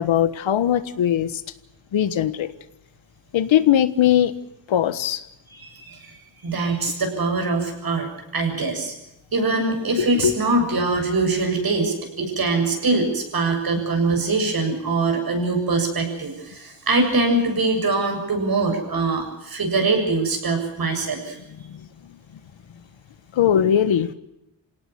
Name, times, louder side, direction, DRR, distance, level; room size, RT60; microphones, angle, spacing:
voice 1, 0.0-1.4 1.9-2.5 3.3-4.3 4.7-5.2 10.0-10.3 21.7-21.8 23.3-24.1, left 10 dB, 90° left, 13 dB, 1.5 m, -20 dB
voice 2, 5.5-6.1 6.4-8.1 8.3-8.9 9.3-21.4, right 3 dB, 50° right, 4 dB, 7.3 m, -23 dB
27.0 x 17.5 x 6.9 m, 0.89 s
wide cardioid pair, 120°, 45 cm